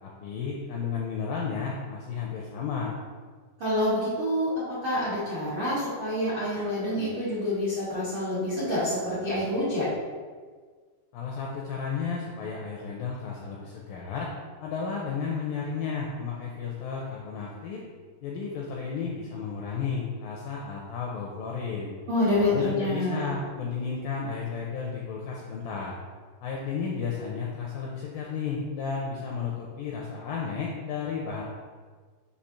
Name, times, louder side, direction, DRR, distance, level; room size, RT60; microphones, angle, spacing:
voice 1, 0.0-2.9 11.1-14.3 14.6-17.8 18.2-21.9 22.4-26.0 26.4-31.4, left 5 dB, 85° left, -2 dB, 2.0 m, -33 dB
voice 2, 3.6-9.9 22.1-23.3, left 1 dB, 85° right, -10 dB, 1.0 m, -27 dB
6.8 x 2.7 x 5.7 m, 1.5 s
omnidirectional pair, 4.9 m